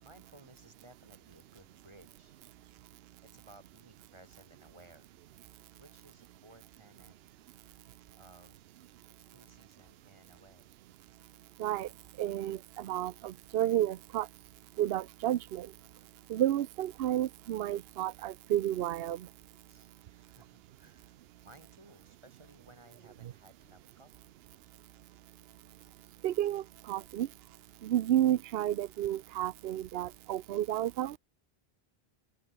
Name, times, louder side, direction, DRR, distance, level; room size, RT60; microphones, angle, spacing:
voice 1, 0.0-2.8 3.2-5.1 5.8-7.2 8.2-8.7 9.2-10.8 19.7-24.3, right 1 dB, 30° right, 3.6 m, -59 dB
voice 2, 12.2-14.3 14.8-15.7 16.3-19.3 26.2-27.3 27.8-31.2, right 12 dB, 75° right, 0.8 m, -31 dB
open air
omnidirectional pair, 1.0 m